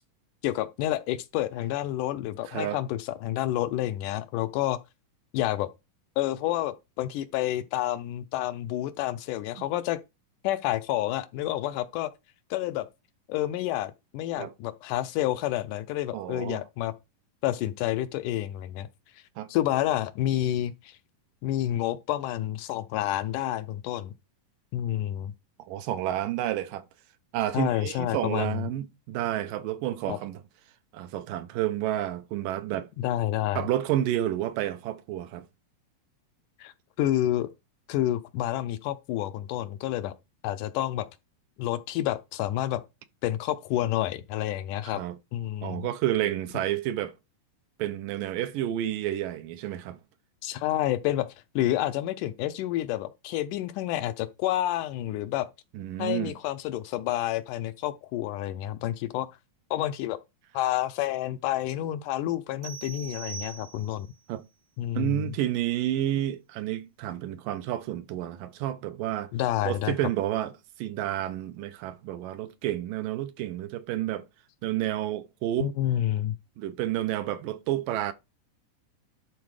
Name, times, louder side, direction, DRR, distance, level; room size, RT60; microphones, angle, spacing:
voice 1, 0.4-4.8 5.3-5.7 6.2-10.0 10.4-12.1 12.5-12.9 13.3-16.9 17.4-18.9 19.5-21.0 21.4-24.1 24.7-25.3 27.5-28.7 30.1-30.2 33.0-33.6 36.6-36.7 37.0-37.5 37.9-40.1 40.4-41.1 41.6-42.8 43.2-45.0 45.3-45.9 50.4-51.3 51.6-55.5 56.0-59.3 59.7-60.2 60.5-64.1 64.8-65.3 69.3-69.9 75.6-76.4, left 13 dB, 80° left, 2.0 m, -29 dB
voice 2, 2.5-2.8 14.4-14.5 16.1-16.6 19.4-19.5 25.7-26.8 27.3-30.4 30.9-32.9 33.6-35.4 44.8-45.2 45.6-47.1 47.8-50.0 55.7-56.3 64.3-64.4 65.0-69.3 69.7-70.5 70.8-74.2 74.6-75.7 76.6-78.1, right 13 dB, 80° right, 2.4 m, -30 dB
sound 1, 62.6-64.2, right 7 dB, 60° right, 1.8 m, -42 dB
11.5 x 4.3 x 4.8 m
omnidirectional pair, 3.9 m